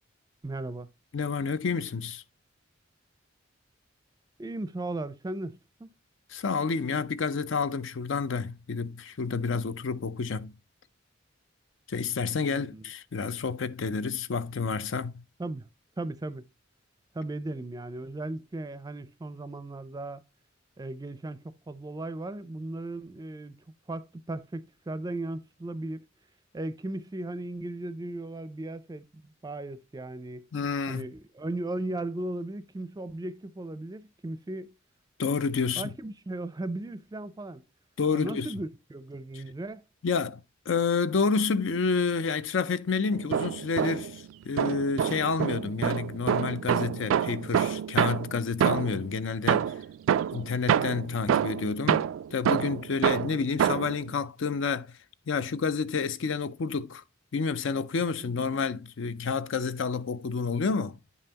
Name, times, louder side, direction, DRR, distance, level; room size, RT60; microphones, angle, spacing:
voice 1, 0.4-0.9 4.4-5.9 12.4-12.9 15.4-15.7 16.0-16.4 17.1-20.2 20.8-23.6 23.9-26.1 26.5-30.5 30.9-34.7 35.8-37.6 38.1-39.8 58.2-58.4, right 2 dB, 20° right, 0.4 m, -36 dB
voice 2, 1.1-2.2 6.3-10.5 11.9-15.2 30.5-31.0 35.2-35.9 38.0-38.5 40.0-40.4 40.7-49.7 50.3-54.9 55.3-57.0 57.3-61.0, left 5 dB, 70° left, 0.5 m, -29 dB
sound 1, 43.1-44.2 44.6-49.1 49.5-54.0, right 8 dB, 85° right, 0.3 m, -27 dB
9.7 x 5.5 x 2.8 m
head